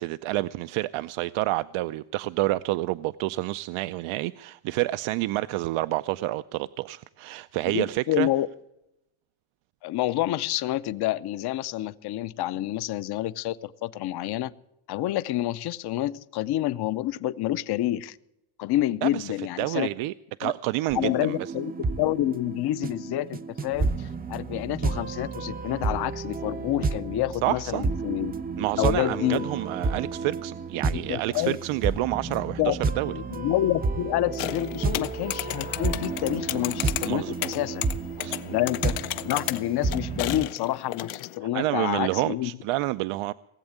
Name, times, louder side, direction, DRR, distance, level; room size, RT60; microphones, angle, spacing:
voice 1, 0.0-8.3 19.0-19.3 19.6-20.1 20.4-21.4 27.4-27.8 28.6-33.1 37.0-37.5 38.2-38.6 41.5-43.3, right 17 dB, 75° right, 0.6 m, -28 dB
voice 2, 7.7-8.5 9.8-14.5 14.9-18.2 18.6-19.9 20.4-20.5 20.9-28.3 28.8-29.5 30.9-31.6 32.3-32.8 33.1-37.9 38.5-42.5, left 14 dB, 55° left, 0.6 m, -28 dB
sound 1, 20.9-40.5, right 4 dB, 20° right, 0.5 m, -31 dB
sound 2, 34.4-41.4, left 15 dB, 90° left, 0.8 m, -34 dB
18.0 x 8.0 x 8.7 m
cardioid pair, 150°, 49 cm